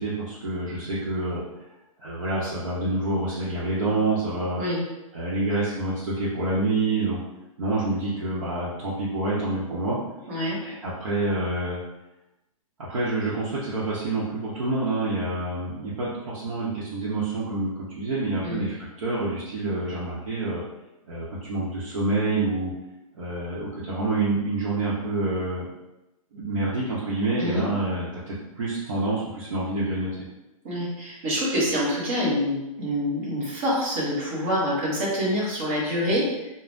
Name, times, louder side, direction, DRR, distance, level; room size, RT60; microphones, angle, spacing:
voice 1, 0.0-1.4 2.0-4.6 5.1-7.2 7.6-10.0 10.6-11.8 12.8-20.6 21.1-22.7 23.1-25.7 26.3-30.1, right 2 dB, 60° right, -9 dB, 0.7 m, -27 dB
voice 2, 4.6-4.9 10.3-10.6 18.4-18.7 27.4-27.7 30.6-36.5, equal, 25° right, -6 dB, 0.7 m, -26 dB
3.3 x 2.0 x 2.5 m, 0.95 s
hypercardioid pair, 175°, 18 cm